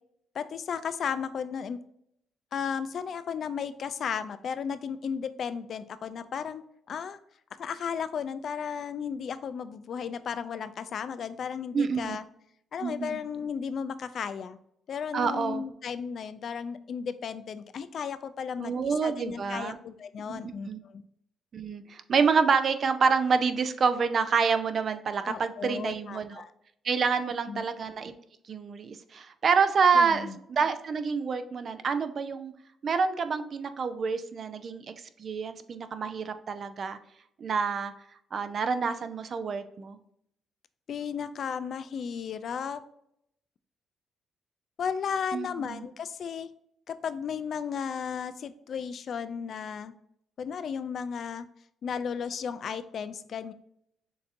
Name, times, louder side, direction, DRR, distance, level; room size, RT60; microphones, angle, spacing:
voice 1, 0.3-1.8 2.5-6.6 6.9-7.2 7.6-12.2 12.7-14.6 14.9-21.0 25.2-26.5 27.5-27.6 29.9-30.4 40.9-42.8 44.8-46.5 46.9-49.9 50.4-51.5 51.8-53.5, left 7 dB, 60° left, 12 dB, 0.4 m, -34 dB
voice 2, 11.7-12.2 12.8-13.2 15.1-15.6 18.6-19.8 20.3-20.8 21.5-26.4 26.8-28.1 28.5-32.5 32.8-34.9 35.2-37.0 37.4-37.9 38.3-40.0 45.3-45.8, right 5 dB, 50° right, 10 dB, 0.5 m, -27 dB
6.6 x 2.7 x 2.6 m, 0.73 s
cardioid pair, 90°, 0 cm